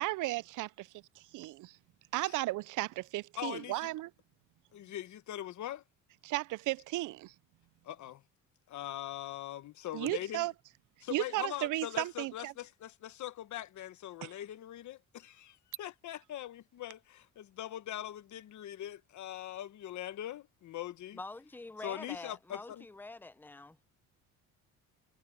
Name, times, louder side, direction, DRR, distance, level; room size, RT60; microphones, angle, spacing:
voice 1, 0.0-0.7 1.3-1.8 2.1-4.1 6.2-7.3 9.9-10.5 11.1-12.5 14.2-14.3, right 18 dB, 65° right, 0.5 m, -34 dB
voice 2, 3.4-3.9 4.7-5.8 7.8-8.2 8.7-10.5 11.0-21.2 21.8-22.8, left 12 dB, 60° left, 1.2 m, -42 dB
voice 3, 21.1-23.8, left 2 dB, 5° left, 0.7 m, -46 dB
cardioid pair, 115°, 33 cm